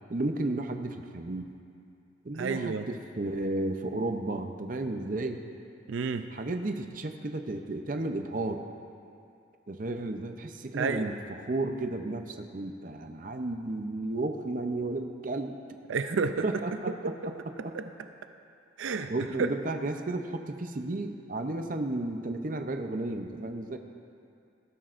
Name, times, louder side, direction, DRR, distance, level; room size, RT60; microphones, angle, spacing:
voice 1, 0.1-1.6 2.2-5.4 6.3-8.6 9.7-15.6 16.1-16.2 16.4-17.3 17.6-17.8 19.1-23.8, right 2 dB, 45° right, 6 dB, 0.6 m, -33 dB
voice 2, 2.4-2.8 5.9-6.2 10.7-11.1 15.9-16.4 17.2-17.3 17.7-17.8 18.8-19.1, right 5 dB, 85° right, 8 dB, 0.5 m, -30 dB
18.0 x 13.5 x 2.6 m, 2.5 s
head